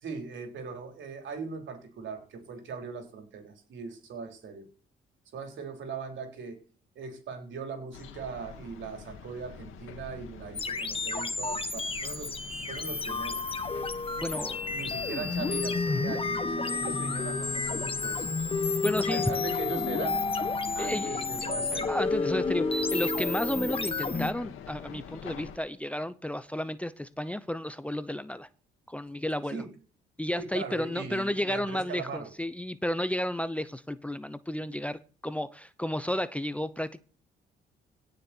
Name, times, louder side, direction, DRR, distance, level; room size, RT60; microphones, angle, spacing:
voice 1, 0.0-4.7 5.3-6.6 7.0-12.3 12.7-13.4 14.7-18.3 19.1-20.2 20.7-22.0 29.5-29.7 30.4-32.3, right 5 dB, 70° right, 4 dB, 4.1 m, -39 dB
sound 1, 7.9-25.6, left 7 dB, 85° left, 1.9 m, -45 dB
sound 2, 10.5-24.3, left 3 dB, 30° left, 1.5 m, -31 dB
voice 2, 14.2-14.7 18.8-19.5 20.8-21.2 21.9-28.5 28.9-29.6 30.2-37.0, left 1 dB, 5° left, 14 dB, 0.7 m, -32 dB
17.0 x 6.7 x 4.5 m, 0.39 s
cardioid pair, 90°, 20 cm